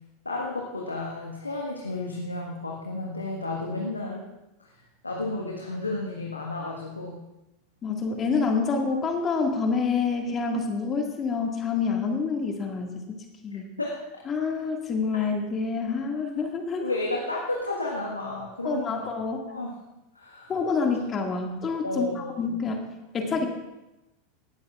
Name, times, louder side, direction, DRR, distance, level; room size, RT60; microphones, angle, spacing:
voice 1, 0.2-4.2 4.6-4.7 5.0-7.2 13.8-14.0 16.8-19.0 19.5-19.8 20.1-20.5 21.8-22.3 23.2-23.3, left 2 dB, 85° left, -2 dB, 1.5 m, -32 dB
voice 2, 7.8-13.2 13.4-13.7 14.3-17.0 18.6-19.4 20.5-22.9 23.1-23.5, left 4 dB, 30° left, 2 dB, 2.0 m, -27 dB
19.0 x 12.5 x 2.5 m, 0.98 s
figure-of-eight pair, 85°, 0 cm